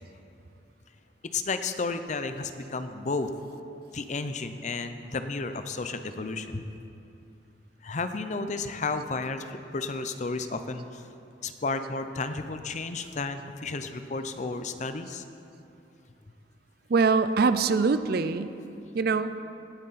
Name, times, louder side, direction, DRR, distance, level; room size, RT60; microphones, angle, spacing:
voice 1, 1.3-3.3 3.9-6.6 7.8-11.0 11.4-15.2, left 3 dB, 40° left, 9 dB, 0.6 m, -32 dB
voice 2, 16.9-18.6 18.9-19.3, right 4 dB, 55° right, 12 dB, 0.4 m, -23 dB
18.0 x 9.4 x 4.2 m, 2.7 s
head